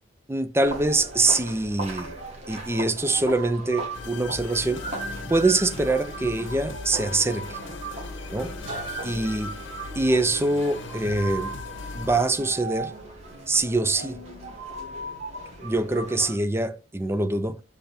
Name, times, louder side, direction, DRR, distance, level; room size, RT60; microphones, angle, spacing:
voice 1, 0.3-2.1 2.5-4.9 5.3-7.6 8.3-8.5 9.0-9.5 9.9-11.5 11.9-12.9 13.5-14.2 15.6-17.6, right 2 dB, 15° right, 0.4 m, -24 dB
sound 1, 0.6-16.4, right 3 dB, 35° right, 1.7 m, -38 dB
sound 2, 3.9-12.3, left 3 dB, 80° left, 0.8 m, -38 dB
Guitar, 5.7-14.6, equal, 80° right, 1.9 m, -46 dB
6.8 x 3.4 x 4.3 m
head